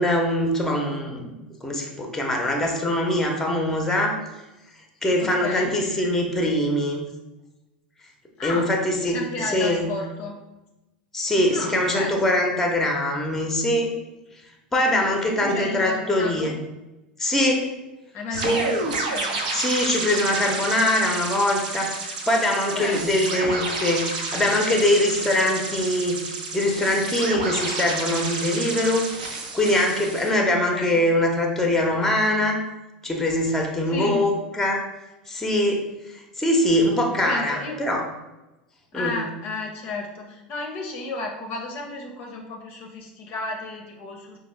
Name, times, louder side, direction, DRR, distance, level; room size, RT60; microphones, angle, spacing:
voice 1, 0.0-1.3 1.6-4.2 5.0-7.0 8.4-9.2 9.5-9.9 11.1-13.9 14.7-16.5 17.2-17.7 18.4-18.7 19.5-29.1 29.5-32.6 33.0-34.8 35.3-35.8 36.4-38.0 38.9-39.2, left 1 dB, 10° left, 2 dB, 0.8 m, -23 dB
voice 2, 5.2-5.8 8.4-8.7 9.0-10.4 11.5-12.4 15.3-16.5 18.1-19.4 20.3-20.5 22.7-23.0 30.4-31.0 33.9-34.3 37.2-37.8 38.9-44.4, left 3 dB, 40° left, 1 dB, 0.6 m, -33 dB
sound 1, 18.3-30.3, right 3 dB, 65° right, 0.7 m, -30 dB
5.1 x 2.3 x 3.2 m, 1.0 s
figure-of-eight pair, 85°, 5 cm